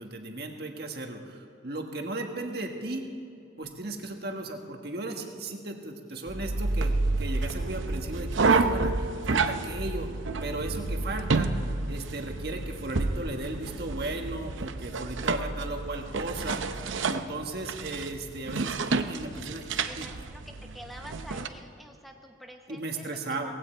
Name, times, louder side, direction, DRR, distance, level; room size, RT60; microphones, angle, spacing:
voice 1, 0.0-3.0 3.6-10.1 10.4-11.5 11.9-20.1 22.7-23.5, right 2 dB, 55° right, 3 dB, 1.6 m, -36 dB
sound 1, 6.3-21.5, right 3 dB, 90° right, 0.7 m, -30 dB
voice 2, 6.4-6.7 19.8-23.5, equal, ahead, 3 dB, 0.8 m, -47 dB
19.0 x 16.0 x 4.5 m, 2.5 s
head